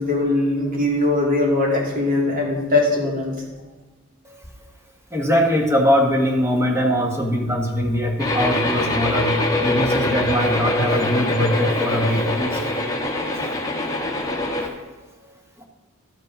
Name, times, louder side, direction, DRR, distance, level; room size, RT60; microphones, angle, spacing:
voice 1, 0.0-3.3, left 2 dB, 40° right, -2 dB, 2.5 m, -20 dB
voice 2, 5.1-12.7 13.3-13.5 14.6-14.7 15.6-15.7, equal, 15° right, 1 dB, 1.3 m, -21 dB
sound 1, 8.2-14.7, left 1 dB, 15° left, 1.1 m, -23 dB
12.5 x 5.3 x 5.3 m, 1.3 s
head